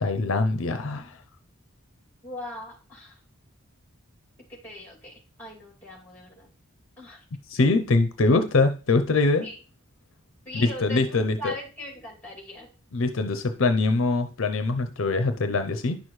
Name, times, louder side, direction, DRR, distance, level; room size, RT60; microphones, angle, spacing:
voice 1, 0.0-1.2 7.5-9.5 10.5-11.5 12.9-16.0, left 3 dB, 65° left, 8 dB, 0.6 m, -23 dB
voice 2, 2.2-3.2 4.5-6.5 7.0-7.2 9.4-9.6 10.4-12.7, left 1 dB, 10° left, -2 dB, 2.5 m, -40 dB
10.5 x 6.3 x 3.1 m, 0.37 s
head